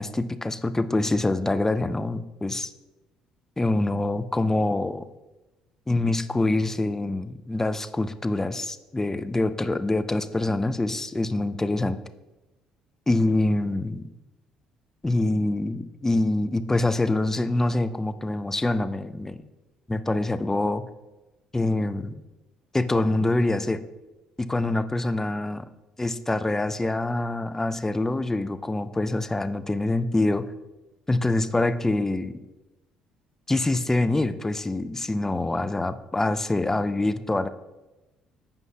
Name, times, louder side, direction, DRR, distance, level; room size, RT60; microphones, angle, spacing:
voice 1, 0.0-2.7 3.6-5.0 5.9-12.0 13.1-14.1 15.0-19.4 19.9-20.8 21.5-22.1 22.7-23.8 24.4-25.6 26.0-30.4 31.1-32.3 33.5-37.5, left 2 dB, 15° left, 11 dB, 0.5 m, -25 dB
14.5 x 5.3 x 2.3 m, 1.1 s
hypercardioid pair, 50°, 3 cm